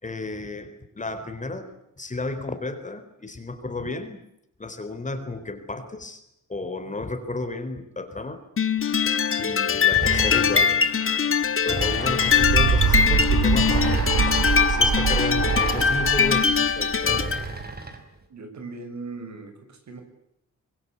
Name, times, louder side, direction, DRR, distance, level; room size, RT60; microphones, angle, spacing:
voice 1, 0.0-4.2 4.6-6.2 6.5-8.4 9.4-10.9 11.6-17.3, left 2 dB, 25° left, 8 dB, 4.1 m, -33 dB
sound 1, 8.6-17.4, left 6 dB, 45° left, 1.9 m, -22 dB
sound 2, 9.9-10.8 11.7-12.6 13.6-14.5 15.3-16.2 17.0-18.0, right 3 dB, 30° right, 4.7 m, -32 dB
sound 3, 11.9-17.5, right 7 dB, 85° right, 2.0 m, -24 dB
voice 2, 18.3-20.0, right 3 dB, 70° right, 6 dB, 6.9 m, -38 dB
24.5 x 23.5 x 8.5 m, 0.79 s
wide cardioid pair, 130°, 30 cm